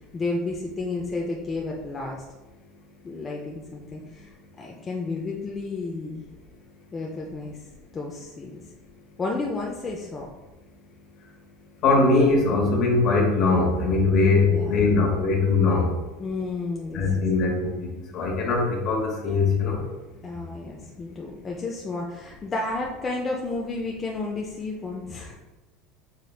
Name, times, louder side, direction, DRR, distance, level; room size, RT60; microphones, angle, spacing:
voice 1, 0.1-2.2 3.0-6.2 6.9-7.6 7.9-8.6 9.2-10.3 14.5-15.0 16.2-17.2 20.2-25.4, left 3 dB, 25° left, -2 dB, 0.5 m, -32 dB
voice 2, 11.8-15.9 16.9-19.8, left 3 dB, 50° left, 0 dB, 1.1 m, -21 dB
4.9 x 3.0 x 2.3 m, 1.1 s
supercardioid pair, 120°, 0 cm